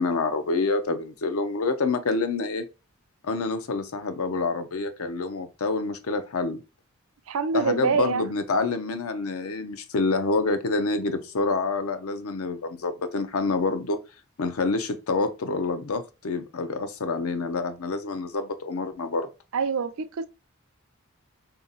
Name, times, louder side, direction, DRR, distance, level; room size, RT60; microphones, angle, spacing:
voice 1, 0.0-2.6 3.2-6.6 7.5-14.0 14.4-19.3, left 3 dB, 80° left, 0.6 m, -27 dB
voice 2, 7.3-8.3 19.5-20.3, right 5 dB, 75° right, 0.4 m, -25 dB
3.5 x 2.8 x 3.9 m
head